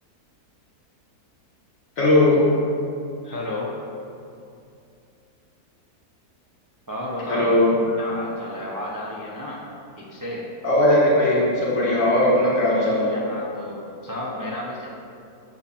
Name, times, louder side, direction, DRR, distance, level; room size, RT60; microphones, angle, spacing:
voice 1, 2.0-2.5 7.3-8.0 10.6-13.1, left 1 dB, 55° left, -7 dB, 2.3 m, -18 dB
voice 2, 3.2-3.7 6.9-7.6 8.0-9.6 10.0-10.4 12.7-14.9, left 1 dB, 20° right, -6 dB, 0.6 m, -32 dB
7.0 x 4.0 x 5.8 m, 2.5 s
omnidirectional pair, 1.7 m